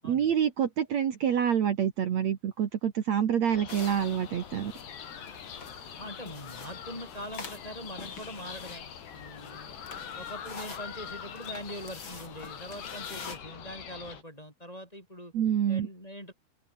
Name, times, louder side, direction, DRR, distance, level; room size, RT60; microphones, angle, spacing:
voice 1, 0.0-4.7 15.3-15.9, right 9 dB, 55° right, 2.2 m, -27 dB
sound 1, 3.5-14.2, left 8 dB, 85° left, 5.6 m, -43 dB
sound 2, 3.7-13.4, left 4 dB, 30° left, 4.1 m, -47 dB
voice 2, 6.0-8.9 9.1-9.8 10.2-15.3 15.7-16.3, equal, 10° left, 7.6 m, -43 dB
open air
omnidirectional pair, 4.7 m